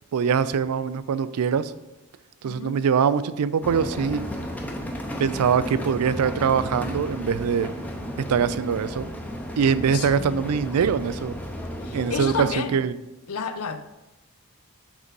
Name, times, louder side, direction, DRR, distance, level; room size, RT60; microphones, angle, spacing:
voice 1, 0.1-1.7 2.4-4.2 5.2-7.7 8.2-9.1 9.6-11.4 11.9-12.9, right 6 dB, 90° right, 15 dB, 0.4 m, -23 dB
voice 2, 2.4-2.8 9.9-10.4 11.8-12.8 13.3-13.9, left 5 dB, 75° left, 10 dB, 0.5 m, -31 dB
sound 1, 3.6-12.5, equal, 5° left, 0.6 m, -33 dB
6.1 x 4.0 x 5.2 m, 1.0 s
head